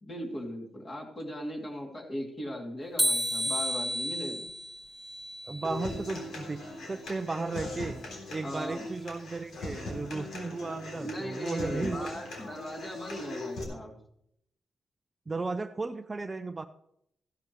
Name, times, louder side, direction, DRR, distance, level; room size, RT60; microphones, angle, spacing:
voice 1, 0.0-4.5 8.4-8.8 11.0-14.0, equal, 30° left, 0 dB, 2.8 m, -38 dB
sound 1, 3.0-6.1, equal, 5° right, 0.9 m, -32 dB
voice 2, 5.5-8.0 8.3-12.1 12.5-12.6 15.3-16.7, right 3 dB, 25° right, 9 dB, 0.5 m, -35 dB
Human voice / Acoustic guitar, 5.6-13.6, left 2 dB, 85° left, 3.6 m, -40 dB
15.0 x 11.5 x 3.1 m, 0.74 s
wide cardioid pair, 135°, 0 cm